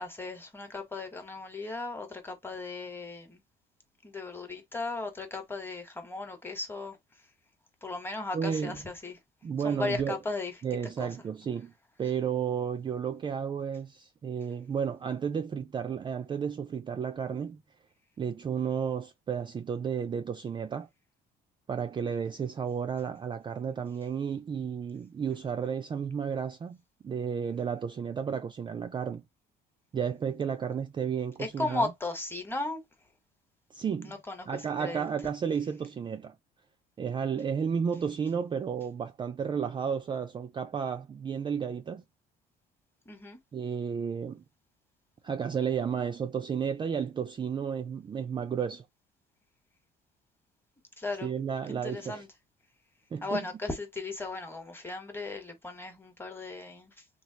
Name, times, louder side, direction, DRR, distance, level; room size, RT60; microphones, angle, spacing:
voice 1, 0.0-3.4 4.0-7.0 7.8-9.2 9.6-10.5 11.0-11.1 31.4-32.8 34.0-35.1 43.1-43.4 51.0-51.3 51.7-52.3 53.2-56.9, left 3 dB, 15° left, 1.1 m, -36 dB
voice 2, 8.3-8.8 9.4-10.2 10.6-11.7 12.0-17.6 18.2-20.9 21.7-26.8 27.0-29.2 29.9-31.9 33.7-34.1 34.5-36.4 37.0-42.0 43.5-44.4 45.2-48.9 51.2-52.2 53.1-53.4, right 7 dB, 30° right, 0.4 m, -32 dB
3.1 x 2.4 x 2.7 m
cardioid pair, 110°, 17 cm